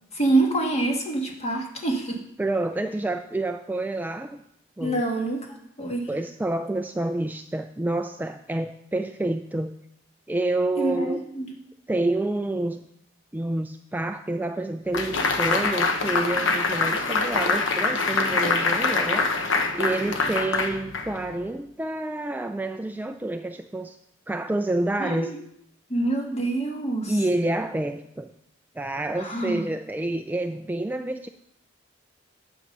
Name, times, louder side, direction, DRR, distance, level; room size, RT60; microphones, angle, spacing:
voice 1, 0.1-2.2 4.8-5.5 5.8-6.1 10.8-11.5 25.0-25.4 25.9-27.1 29.2-29.6, right 2 dB, 35° left, 1 dB, 1.8 m, -26 dB
voice 2, 2.4-4.4 4.8-5.0 6.1-9.7 10.3-11.2 11.9-12.8 13.3-19.3 19.7-24.0 24.3-25.4 27.1-28.3 28.8-31.3, right 2 dB, 10° right, 7 dB, 0.3 m, -28 dB
sound 1, 14.9-21.4, left 3 dB, 75° left, 1.1 m, -24 dB
10.5 x 7.2 x 5.3 m, 0.77 s
head